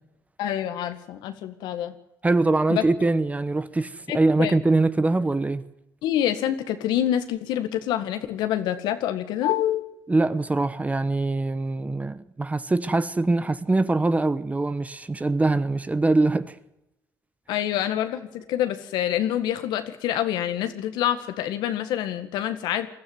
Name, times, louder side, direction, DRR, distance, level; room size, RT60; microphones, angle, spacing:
voice 1, 0.4-1.9 2.7-2.8 4.1-4.6 6.0-9.8 17.5-22.9, left 11 dB, 85° left, 1.8 m, -26 dB
voice 2, 2.2-5.6 10.1-16.5, right 2 dB, 20° right, 1.1 m, -23 dB
21.5 x 13.5 x 9.6 m
supercardioid pair, 75°, 7 cm